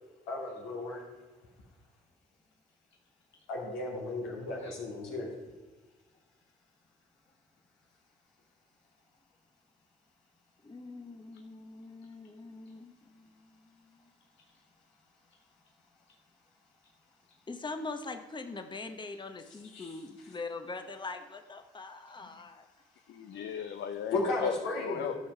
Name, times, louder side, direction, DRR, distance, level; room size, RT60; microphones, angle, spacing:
voice 1, 0.3-1.0 3.5-5.3 19.7-19.9 24.1-25.2, left 2 dB, 85° left, -1 dB, 2.5 m, -34 dB
voice 2, 10.6-14.1 17.5-22.7, left 3 dB, 25° left, 7 dB, 1.0 m, -43 dB
voice 3, 23.1-25.1, left 8 dB, 65° left, 7 dB, 0.7 m, -37 dB
12.5 x 5.7 x 5.5 m, 1.2 s
hypercardioid pair, 50°, 20 cm